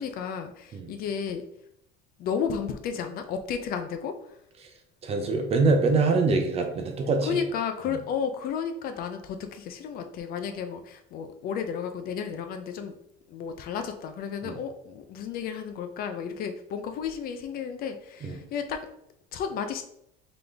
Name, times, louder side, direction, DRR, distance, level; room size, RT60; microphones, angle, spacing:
voice 1, 0.0-1.4 2.2-4.4 7.3-12.9 13.3-18.9 19.3-19.8, left 7 dB, 45° left, 8 dB, 0.5 m, -33 dB
voice 2, 5.0-7.4 7.9-8.0 14.4-14.6 18.2-18.4, right 3 dB, 30° right, 4 dB, 0.7 m, -24 dB
3.8 x 3.7 x 3.4 m, 0.75 s
cardioid pair, 145°, 21 cm